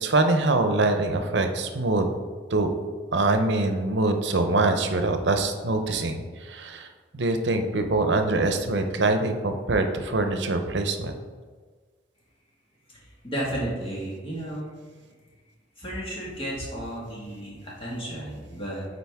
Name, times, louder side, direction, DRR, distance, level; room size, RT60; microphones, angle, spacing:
voice 1, 0.0-2.1 2.5-2.7 3.1-6.9 7.1-11.1, right 2 dB, 70° right, 6 dB, 0.7 m, -24 dB
voice 2, 12.9-14.7 15.8-18.9, right 1 dB, 30° left, -5 dB, 1.8 m, -33 dB
8.7 x 4.1 x 3.5 m, 1.5 s
head